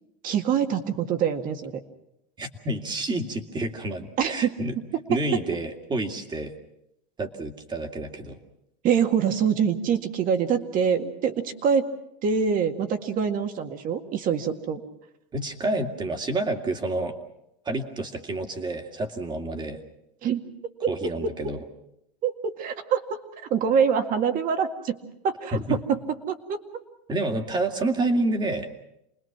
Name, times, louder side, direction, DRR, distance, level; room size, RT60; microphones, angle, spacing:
voice 1, 0.2-1.7 4.2-4.5 8.8-11.9 12.2-14.8 20.2-20.4 20.8-21.3 22.2-23.2 23.5-25.0 25.2-26.0 26.3-26.8, right 7 dB, 40° right, 7 dB, 2.1 m, -25 dB
voice 2, 2.4-4.7 5.1-6.5 7.2-8.4 15.3-17.2 17.7-19.8 20.9-21.6 25.5-25.8 27.1-28.7, right 2 dB, 20° right, 5 dB, 2.3 m, -29 dB
28.0 x 20.5 x 6.1 m, 0.83 s
supercardioid pair, 140°, 21 cm